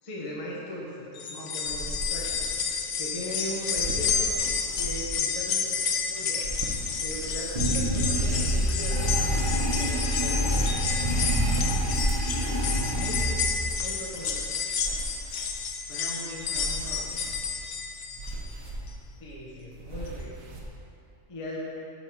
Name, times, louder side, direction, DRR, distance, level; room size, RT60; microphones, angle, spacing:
voice 1, 0.0-2.5 3.0-4.3 4.7-5.8 6.1-6.5 7.0-9.2 9.8-11.1 12.9-14.6 19.2-20.4 21.3-21.6, equal, 30° left, -5 dB, 0.8 m, -38 dB
sound 1, 1.2-18.5 18.9-19.0 20.1-20.2, left 5 dB, 65° left, 0.9 m, -30 dB
sound 2, 1.6-20.7, right 1 dB, 80° right, 1.2 m, -39 dB
sound 3, 7.6-13.6, right 1 dB, 45° right, 1.2 m, -27 dB
voice 2, 12.9-13.4 15.9-17.2, left 1 dB, 45° left, -6 dB, 1.2 m, -42 dB
8.1 x 3.5 x 4.6 m, 2.8 s
omnidirectional pair, 1.4 m